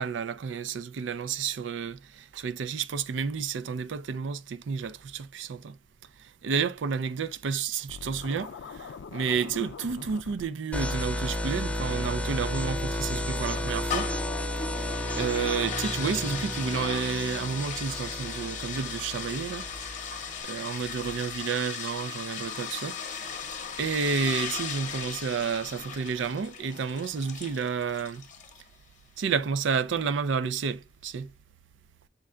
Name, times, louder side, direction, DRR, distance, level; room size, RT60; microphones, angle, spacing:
voice 1, 0.0-5.8 6.4-14.1 14.8-14.9 15.2-19.6 20.4-23.4 23.8-28.2 29.2-31.3, right 6 dB, 70° right, 0.4 m, -31 dB
Scratching (performance technique), 7.9-10.4, left 6 dB, 70° left, 0.4 m, -43 dB
sound 1, 10.7-20.4, left 1 dB, 5° left, 0.6 m, -33 dB
sound 2, 13.4-28.7, left 6 dB, 45° left, 0.8 m, -37 dB
6.4 x 2.2 x 3.6 m
head